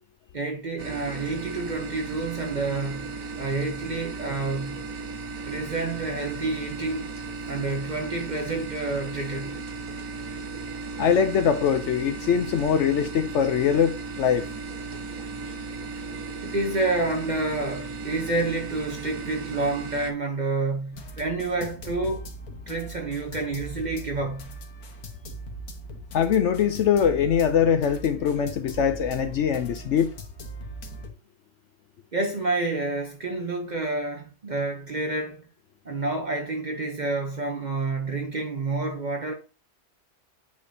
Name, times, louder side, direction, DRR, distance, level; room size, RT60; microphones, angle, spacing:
voice 1, 0.3-4.8 5.5-7.1 7.5-9.6 16.4-22.3 22.7-24.5 32.1-35.5 35.8-39.3, right 3 dB, 40° right, 0.7 m, -29 dB
sound 1, 0.8-20.1, right 4 dB, 70° right, 1.4 m, -36 dB
voice 2, 11.0-14.5 26.1-30.1, left 8 dB, 65° left, 0.8 m, -22 dB
sound 2, 20.9-31.1, right 1 dB, 85° left, 1.6 m, -40 dB
8.4 x 5.0 x 2.7 m
omnidirectional pair, 1.5 m